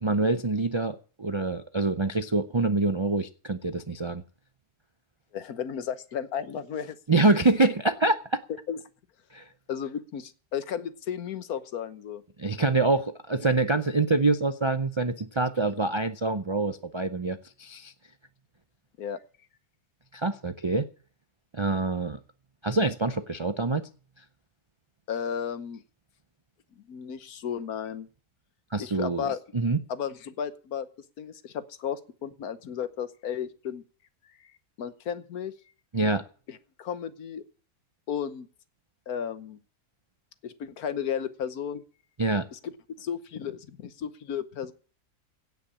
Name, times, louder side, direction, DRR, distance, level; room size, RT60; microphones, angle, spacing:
voice 1, 0.0-4.2 7.1-8.4 9.3-9.5 12.4-17.9 20.1-20.9 21.5-22.2 22.6-23.9 28.7-29.8 35.9-36.2 42.2-42.5, right 3 dB, 50° right, 10 dB, 0.3 m, -26 dB
voice 2, 5.3-7.4 8.5-8.8 9.7-12.2 19.0-19.2 25.1-25.8 26.8-28.1 28.8-29.4 29.9-30.9 31.2-33.8 34.4-35.5 36.5-37.4 38.1-38.5 39.1-39.6 40.4-41.8 42.5-42.7 43.0-44.7, left 8 dB, 80° left, 13 dB, 1.5 m, -34 dB
16.5 x 5.9 x 8.6 m, 0.41 s
omnidirectional pair, 1.6 m